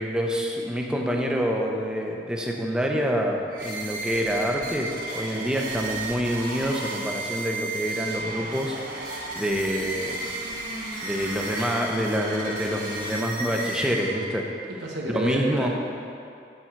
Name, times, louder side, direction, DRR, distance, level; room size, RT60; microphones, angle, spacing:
voice 1, 0.0-10.2 11.0-14.5 15.1-15.7, equal, 5° right, 0 dB, 0.6 m, -27 dB
sound 1, 3.5-14.5, right 2 dB, 50° right, 1.6 m, -33 dB
voice 2, 14.7-15.7, right 1 dB, 85° right, -2 dB, 1.2 m, -30 dB
7.2 x 7.2 x 4.4 m, 2.5 s
head